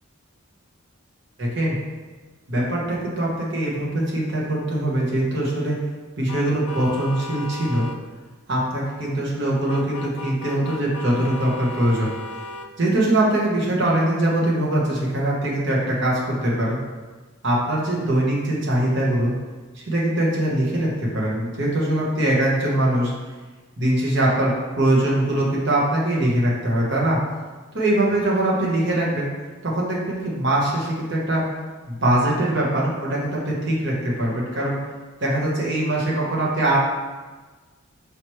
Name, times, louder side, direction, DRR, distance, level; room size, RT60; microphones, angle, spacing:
voice 1, 1.4-1.8 2.5-5.8 6.2-7.9 8.5-12.1 12.8-16.8 17.4-19.3 19.7-23.1 23.8-27.2 27.7-29.3 29.6-31.4 31.9-34.8 35.2-36.8, right 1 dB, 55° right, -4 dB, 1.1 m, -22 dB
sound 1, 6.3-8.0 9.7-12.7, left 2 dB, 75° left, 0.3 m, -35 dB
4.9 x 3.1 x 3.1 m, 1.3 s
head